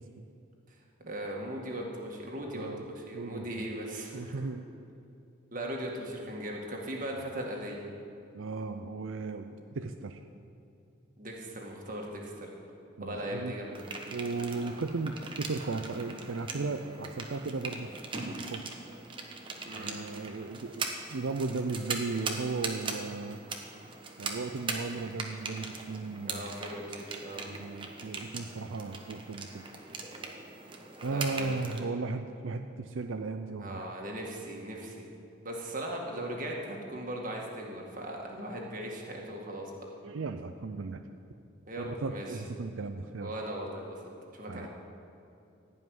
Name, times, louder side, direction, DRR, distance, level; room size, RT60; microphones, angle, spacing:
voice 1, 1.0-2.7 3.0-4.4 5.5-7.8 11.2-12.5 13.0-13.8 19.6-19.9 26.2-27.4 31.1-31.8 33.6-35.1 35.4-39.7 41.7-42.4 43.2-44.0 44.3-44.7, right 1 dB, 40° right, -1 dB, 1.9 m, -38 dB
voice 2, 2.5-2.8 3.1-3.7 4.1-4.7 8.3-10.2 13.0-13.5 14.1-18.6 19.7-23.4 24.2-26.6 27.5-29.6 31.0-33.9 40.0-41.0 41.8-43.3 44.5-44.7, right 3 dB, 80° right, 6 dB, 0.5 m, -36 dB
sound 1, 13.8-31.8, right 3 dB, 25° right, 1.0 m, -40 dB
16.0 x 5.7 x 9.4 m, 2.7 s
head